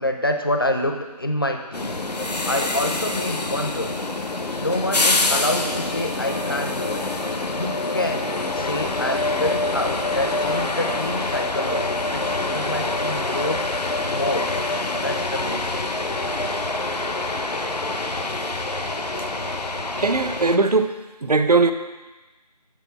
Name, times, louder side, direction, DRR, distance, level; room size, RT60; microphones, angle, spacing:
voice 1, 0.0-2.1 2.4-4.0 4.5-7.0 7.5-13.7 14.1-14.5 15.0-15.9, left 1 dB, 35° left, 4 dB, 0.5 m, -27 dB
sound 1, 1.7-20.6, left 2 dB, 75° left, 0.7 m, -26 dB
voice 2, 20.0-20.9 21.2-21.7, right 3 dB, 65° right, 9 dB, 0.6 m, -19 dB
7.1 x 4.7 x 5.6 m, 1.2 s
figure-of-eight pair, 170°, 21 cm